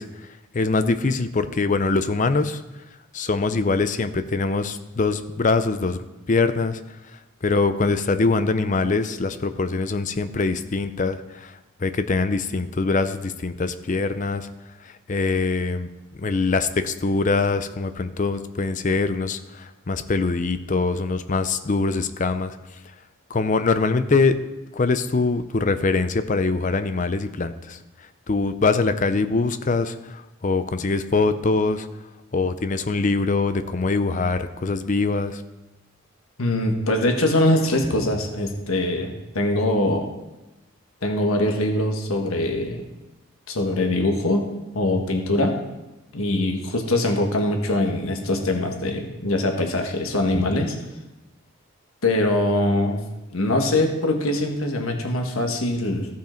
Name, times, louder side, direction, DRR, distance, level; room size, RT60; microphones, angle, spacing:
voice 1, 0.0-2.6 3.1-6.0 6.3-6.8 7.1-14.5 14.8-15.9 16.2-22.8 23.3-24.4 24.7-31.9 32.3-35.4, left 3 dB, 35° left, 11 dB, 0.5 m, -23 dB
voice 2, 36.4-40.1 41.0-42.8 43.5-44.5 44.7-45.6 46.1-50.7 52.0-53.0 53.3-56.1, left 1 dB, 90° left, 3 dB, 1.4 m, -22 dB
15.0 x 5.6 x 4.4 m, 1.0 s
head